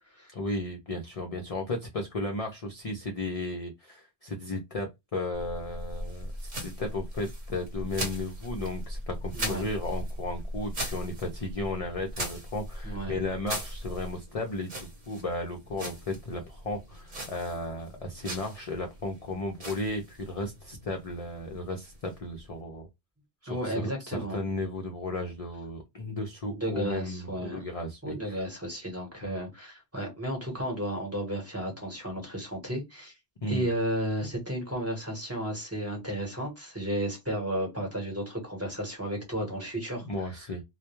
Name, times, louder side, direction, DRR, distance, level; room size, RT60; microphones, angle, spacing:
voice 1, 0.3-22.9 23.4-28.4 29.2-29.4 33.4-33.7 40.0-40.6, left 2 dB, 45° left, 0.5 m, -35 dB
sound 1, 5.3-22.6, right 1 dB, 45° right, 1.0 m, -39 dB
voice 2, 9.3-9.7 12.8-13.1 23.5-24.4 26.5-27.6 28.0-33.1 33.5-40.1, right 1 dB, 15° right, 0.9 m, -33 dB
2.2 x 2.1 x 2.9 m
omnidirectional pair, 1.1 m